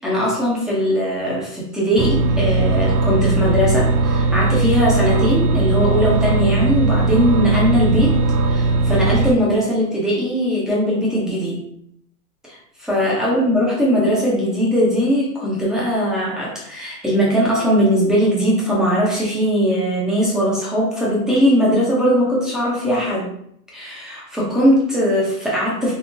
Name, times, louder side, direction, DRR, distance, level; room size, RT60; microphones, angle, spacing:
voice 1, 0.0-8.2 8.5-11.6 12.5-23.3 23.7-25.9, equal, ahead, -6 dB, 0.5 m, -19 dB
sound 1, 2.0-9.3, right 3 dB, 85° right, 0.7 m, -18 dB
3.8 x 2.8 x 2.5 m, 0.70 s
hypercardioid pair, 140°, 45 cm